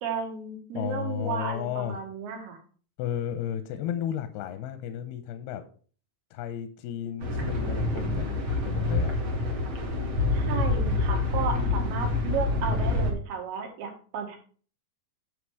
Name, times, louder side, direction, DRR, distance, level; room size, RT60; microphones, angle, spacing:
voice 1, 0.0-2.6 10.3-14.4, right 6 dB, 75° right, 3 dB, 3.7 m, -33 dB
voice 2, 0.7-2.0 3.0-5.6 6.3-9.2 11.4-11.9, left 10 dB, 85° left, 8 dB, 2.7 m, -33 dB
sound 1, 7.2-13.1, left 3 dB, 55° right, 1.5 m, -27 dB
9.7 x 5.8 x 4.8 m, 0.42 s
omnidirectional pair, 4.6 m